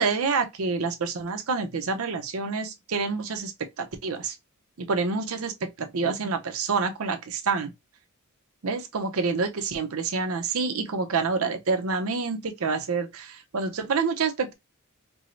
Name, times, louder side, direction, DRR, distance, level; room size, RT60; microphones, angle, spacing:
voice 1, 0.0-3.5 3.8-4.3 4.8-7.7 8.6-14.5, right 4 dB, 85° right, 0.6 m, -27 dB
4.6 x 2.0 x 2.5 m
head